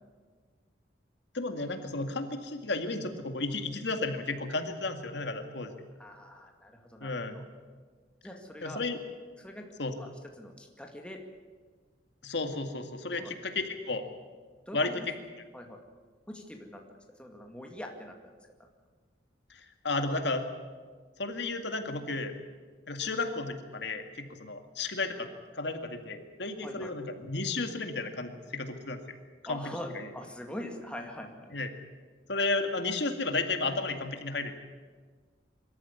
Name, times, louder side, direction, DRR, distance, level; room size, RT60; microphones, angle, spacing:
voice 1, 1.3-5.7 7.0-7.4 8.6-9.0 9.8-9.9 12.2-14.0 14.7-14.9 19.5-20.5 21.2-22.3 22.9-25.3 25.5-29.2 29.5-29.6 29.9-30.1 31.5-31.7 32.3-34.5, left 3 dB, 70° left, 6 dB, 2.1 m, -33 dB
voice 2, 6.0-7.4 8.2-8.8 9.4-9.7 9.9-10.1 10.4-11.2 13.1-13.3 14.7-15.1 15.5-15.8 16.3-16.8 17.1-18.1 26.6-26.9 29.5-31.6, left 1 dB, 5° left, 2 dB, 2.1 m, -43 dB
24.0 x 13.5 x 9.7 m, 1.5 s
head